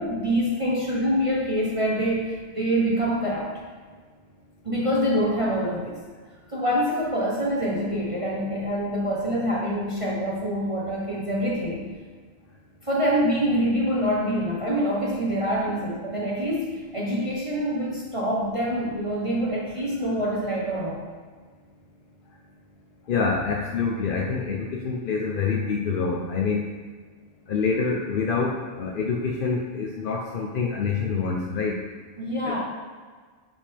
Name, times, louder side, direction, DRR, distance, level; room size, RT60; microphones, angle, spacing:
voice 1, 0.0-3.5 4.6-6.0 6.5-11.9 12.8-21.0 32.2-32.6, equal, 25° right, -5 dB, 1.0 m, -25 dB
voice 2, 23.1-26.7 27.5-31.8 32.4-32.6, left 5 dB, 50° left, -1 dB, 0.7 m, -26 dB
10.0 x 5.4 x 3.4 m, 1.5 s
omnidirectional pair, 1.4 m